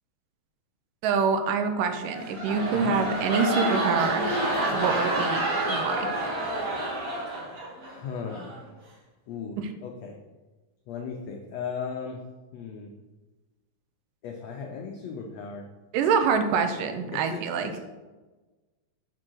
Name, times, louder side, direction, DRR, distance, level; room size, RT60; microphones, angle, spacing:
voice 1, 1.0-4.2 4.7-6.1 15.9-17.7, right 5 dB, 85° right, 7 dB, 2.3 m, -26 dB
sound 1, 1.9-7.9 8.3-8.6, right 1 dB, 55° right, 2.4 m, -28 dB
voice 2, 7.8-8.7 9.3-10.2 10.9-12.2 12.5-12.9 14.2-15.7 17.1-17.8, left 6 dB, 90° left, 1 dB, 1.4 m, -37 dB
7.1 x 3.7 x 6.1 m, 1.2 s
omnidirectional pair, 3.8 m